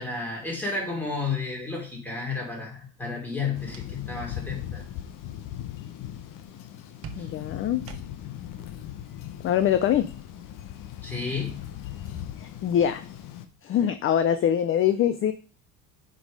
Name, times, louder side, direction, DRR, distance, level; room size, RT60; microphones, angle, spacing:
voice 1, 0.0-4.8 7.2-7.3 11.0-11.6, left 4 dB, 5° left, -1 dB, 2.7 m, -32 dB
sound 1, 3.3-4.3 4.6-4.9 7.0-8.4, right 6 dB, 35° right, 0.9 m, -46 dB
Thunder, 3.5-13.4, left 11 dB, 50° left, 1.0 m, -39 dB
voice 2, 7.2-7.8 9.4-10.1 12.4-13.0 13.6-15.3, left 10 dB, 35° left, 11 dB, 0.4 m, -23 dB
7.4 x 5.3 x 5.1 m, 0.38 s
cardioid pair, 155°, 40 cm